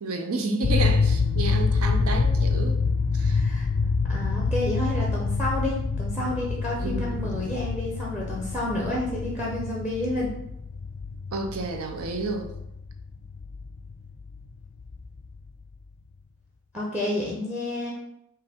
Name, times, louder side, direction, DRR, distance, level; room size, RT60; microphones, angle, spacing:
voice 1, 0.0-2.8 3.1-3.4 6.8-7.5 11.3-12.5, right 3 dB, 75° right, 4 dB, 0.6 m, -31 dB
sound 1, 0.6-15.5, left 4 dB, 50° left, 0.3 m, -27 dB
voice 2, 3.3-3.7 4.1-10.3 16.7-17.9, left 1 dB, 5° right, -3 dB, 0.7 m, -30 dB
5.3 x 2.5 x 3.5 m, 0.78 s
head